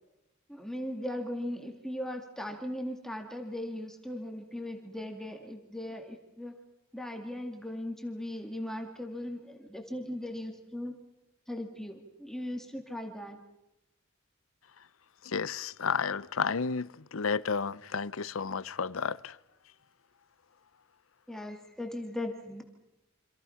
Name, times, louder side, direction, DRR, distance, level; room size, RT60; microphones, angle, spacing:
voice 1, 0.5-6.5 6.9-10.9 11.5-13.4 21.3-22.6, left 1 dB, ahead, 2.1 m, -38 dB
voice 2, 15.2-19.4, left 5 dB, 75° left, 0.7 m, -32 dB
27.5 x 26.5 x 5.8 m
head